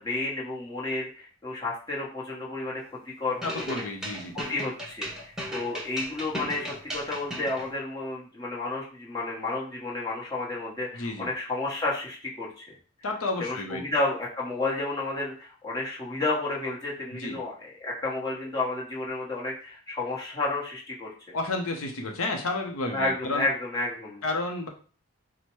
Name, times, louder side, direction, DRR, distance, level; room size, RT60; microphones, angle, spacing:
voice 1, 0.0-3.8 4.3-12.7 13.4-21.3 22.9-24.2, left 2 dB, 20° left, -5 dB, 1.1 m, -31 dB
voice 2, 3.4-4.4 10.9-11.3 13.0-13.9 17.1-17.4 21.3-23.5 24.2-24.7, left 2 dB, 75° left, 3 dB, 0.7 m, -31 dB
sound 1, 3.4-7.7, equal, 5° right, 0.8 m, -36 dB
4.4 x 2.1 x 4.5 m, 0.40 s
head